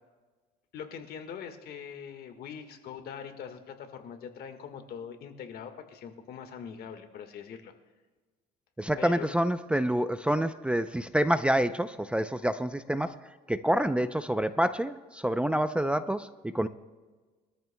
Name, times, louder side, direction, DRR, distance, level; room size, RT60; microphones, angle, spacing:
voice 1, 0.7-7.7 9.0-9.3, left 7 dB, 65° left, 6 dB, 1.6 m, -42 dB
voice 2, 8.8-13.2 13.5-16.3 16.5-16.7, right 1 dB, 5° right, 10 dB, 0.5 m, -27 dB
23.0 x 13.5 x 2.2 m, 1.3 s
cardioid pair, 110°, 17 cm